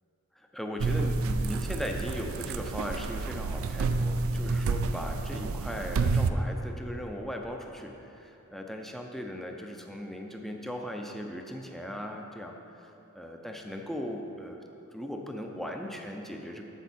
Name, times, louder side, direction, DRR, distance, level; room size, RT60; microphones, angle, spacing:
voice 1, 0.3-14.6 14.9-16.6, equal, ahead, 2 dB, 0.5 m, -38 dB
sound 1, 0.8-6.3, right 3 dB, 75° right, 0.4 m, -29 dB
8.1 x 7.1 x 4.3 m, 2.9 s
head